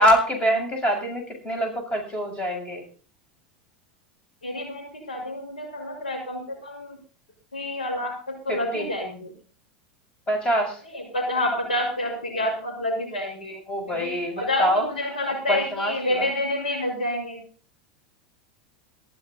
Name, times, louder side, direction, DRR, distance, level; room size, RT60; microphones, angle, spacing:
voice 1, 0.0-2.8 8.5-8.9 10.3-10.8 13.7-14.8 15.5-16.3, equal, 20° left, 4 dB, 7.4 m, -24 dB
voice 2, 4.4-7.0 7.5-9.3 10.9-13.6 13.9-17.4, left 1 dB, 85° left, 1 dB, 6.5 m, -28 dB
15.5 x 13.0 x 4.0 m, 0.40 s
hypercardioid pair, 90°, 5 cm